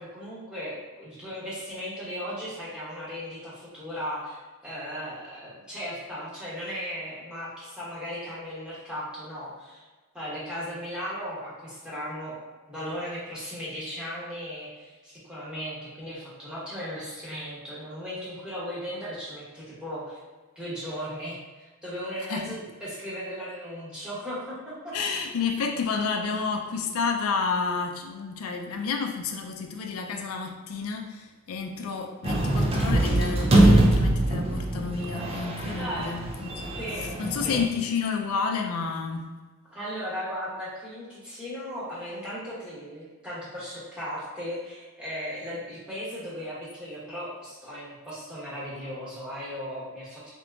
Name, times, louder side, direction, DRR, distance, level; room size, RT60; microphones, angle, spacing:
voice 1, 0.0-4.4 4.6-9.8 10.1-12.4 12.7-20.2 20.5-24.9 35.7-36.1 36.8-37.1 37.4-37.6 39.7-50.3, equal, 5° right, -10 dB, 1.2 m, -36 dB
voice 2, 24.9-36.6 37.2-39.3, left 5 dB, 75° left, 3 dB, 0.4 m, -30 dB
sound 1, 32.2-37.7, right 1 dB, 25° right, 0.4 m, -23 dB
3.7 x 3.6 x 2.3 m, 1.3 s
head